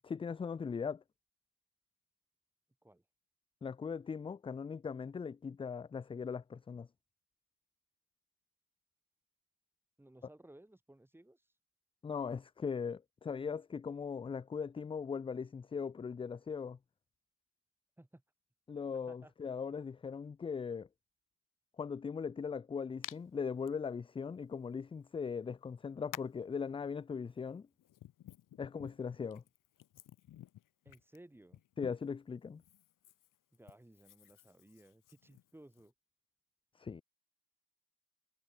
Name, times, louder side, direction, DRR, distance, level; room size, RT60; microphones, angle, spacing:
voice 1, 0.0-1.0 3.6-6.9 12.0-16.8 18.7-20.9 21.8-27.7 28.6-29.4 31.8-32.6 36.8-37.0, left 6 dB, 20° left, 0.3 m, -39 dB
voice 2, 10.0-11.5 18.0-18.2 18.9-19.3 30.8-31.6 33.5-35.9, right 1 dB, 5° right, 5.0 m, -59 dB
Hands, 23.0-23.2 23.6-23.7 25.0-25.1 26.1-26.4 27.4-32.2 32.6-35.9, left 13 dB, 85° left, 2.7 m, -52 dB
cardioid pair, 140°, 31 cm